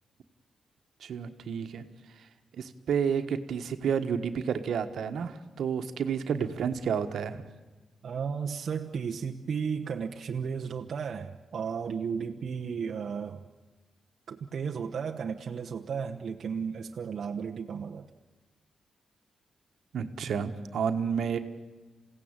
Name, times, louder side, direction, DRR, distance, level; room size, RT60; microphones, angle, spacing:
voice 1, 1.0-1.8 2.6-7.4 19.9-21.4, right 7 dB, 80° right, 8 dB, 1.5 m, -30 dB
voice 2, 8.0-13.4 14.3-18.1, right 6 dB, 55° right, 2 dB, 1.0 m, -34 dB
28.0 x 16.5 x 9.0 m, 1.3 s
wide cardioid pair, 135°, 0 cm